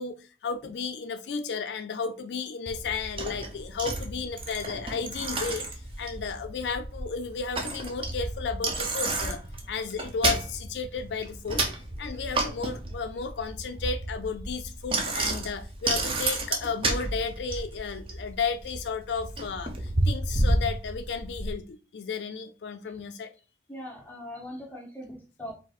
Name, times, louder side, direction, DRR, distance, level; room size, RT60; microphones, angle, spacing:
voice 1, 0.0-23.3, left 5 dB, 80° left, 0.4 m, -33 dB
Bicycle, 2.7-21.5, right 2 dB, 30° right, 0.7 m, -31 dB
voice 2, 23.7-25.5, left 1 dB, 10° left, 1.5 m, -40 dB
5.0 x 2.0 x 4.0 m
head